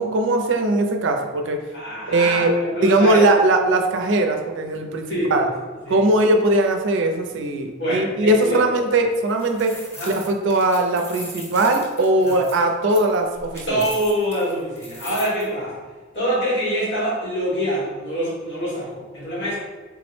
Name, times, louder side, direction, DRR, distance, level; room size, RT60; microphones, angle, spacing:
voice 1, 0.0-1.6 2.1-2.5 2.8-5.0 5.3-5.4 5.9-9.8 10.1-13.8, right 2 dB, 70° right, 4 dB, 0.4 m, -20 dB
voice 2, 1.7-3.2 5.1-5.5 5.8-6.0 7.8-8.6 9.9-10.1 12.2-12.4 13.7-15.8 16.1-19.6, equal, 60° left, -8 dB, 1.2 m, -25 dB
sound 1, 9.1-15.4, equal, 15° left, 0.5 m, -39 dB
3.6 x 2.0 x 3.1 m, 1.3 s
head